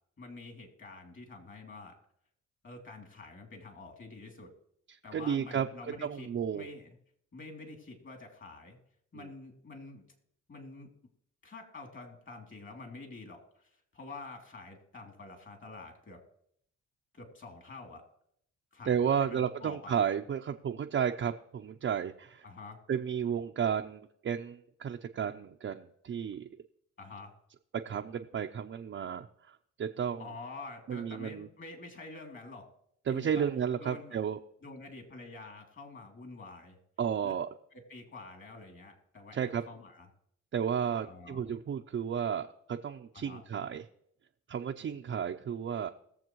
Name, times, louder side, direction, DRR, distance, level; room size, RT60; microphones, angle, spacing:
voice 1, 0.2-2.0 2.6-4.5 5.0-7.0 7.3-8.8 9.1-10.0 10.5-10.9 11.4-16.2 17.1-18.0 18.7-20.0 22.4-22.8 27.0-27.3 30.2-32.6 33.1-33.5 33.8-34.2 34.6-36.8 37.2-37.3 37.7-40.1 41.0-41.4 43.1-43.4, left 3 dB, 40° left, 3 dB, 3.0 m, -47 dB
voice 2, 5.1-5.7 6.0-6.7 9.1-9.3 18.8-22.4 22.9-26.5 27.8-30.2 30.9-31.5 33.1-34.4 37.0-37.5 39.3-39.6 40.5-43.8 44.5-45.9, right 8 dB, 45° right, 3 dB, 0.6 m, -33 dB
20.5 x 7.2 x 3.1 m, 0.70 s
cardioid pair, 90°, 30 cm